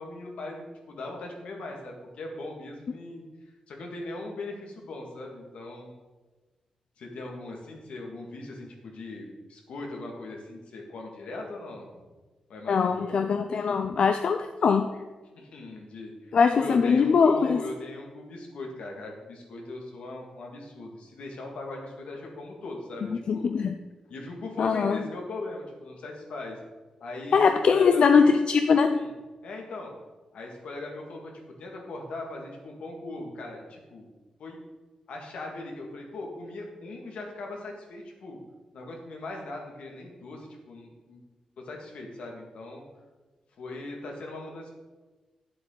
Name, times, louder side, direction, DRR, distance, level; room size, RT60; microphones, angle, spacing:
voice 1, 0.0-5.9 7.0-12.0 12.5-13.2 15.4-23.5 24.1-26.6 27.0-28.4 29.0-29.1 29.4-29.9 30.3-34.1 34.4-34.6 35.1-38.4 38.7-41.2 41.6-42.8 43.6-44.7, left 2 dB, 80° left, 1 dB, 2.0 m, -39 dB
voice 2, 12.7-14.9 16.3-17.6 23.3-23.7 24.6-25.0 27.3-29.0, left 5 dB, 55° left, 7 dB, 0.5 m, -21 dB
10.5 x 7.6 x 3.9 m, 1.2 s
wide cardioid pair, 145°, 2 cm